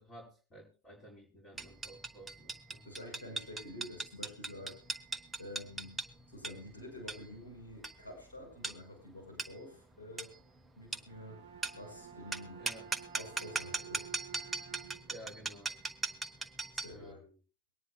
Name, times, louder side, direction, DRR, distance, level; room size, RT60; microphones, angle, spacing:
voice 1, 0.0-2.9 12.5-12.9 15.1-15.7 16.9-17.4, right 1 dB, 20° left, -2 dB, 5.1 m, -53 dB
sound 1, 1.6-17.0, right 3 dB, 10° right, 1.2 m, -41 dB
voice 2, 2.8-4.8 5.4-6.0 6.3-10.3 10.7-11.4 11.7-12.6 13.1-14.1 16.7-17.2, left 1 dB, 80° left, 0 dB, 6.4 m, -48 dB
Bowed string instrument, 11.0-15.3, right 7 dB, 70° right, 1.0 m, -51 dB
23.0 x 9.8 x 2.4 m, 0.35 s
hypercardioid pair, 95°, 0 cm